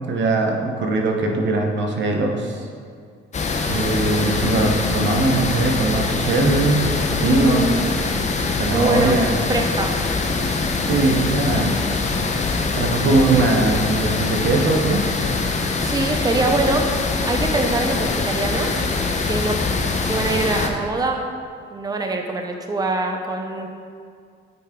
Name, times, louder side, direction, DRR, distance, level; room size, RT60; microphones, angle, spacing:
voice 1, 0.0-2.7 3.7-7.7 8.6-9.3 10.8-11.8 12.8-15.1, right 2 dB, 65° right, 2 dB, 1.0 m, -20 dB
sound 1, 3.3-20.7, left 3 dB, 35° left, 0.8 m, -23 dB
voice 2, 7.2-7.8 8.7-9.2 9.5-9.9 15.8-16.9 17.3-18.8 19.3-19.6 20.1-21.2 21.7-23.7, right 2 dB, 20° right, 3 dB, 0.7 m, -23 dB
8.1 x 5.8 x 3.8 m, 2.2 s
cardioid pair, 90°, 20 cm